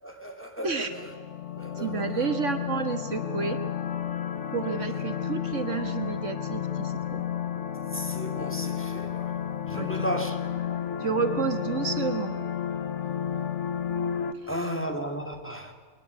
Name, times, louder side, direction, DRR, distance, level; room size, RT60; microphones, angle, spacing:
voice 1, 0.0-1.2 1.5-2.3 7.9-9.4 9.7-10.4 14.5-15.7, equal, 10° left, 2.1 m, -35 dB
sound 1, 0.9-14.3, left 9 dB, 60° left, 1.3 m, -32 dB
voice 2, 1.8-3.6 4.5-7.2 9.7-9.9 11.0-12.4 14.3-14.5, right 6 dB, 60° right, 1.7 m, -30 dB
22.0 x 20.0 x 8.2 m
omnidirectional pair, 1.5 m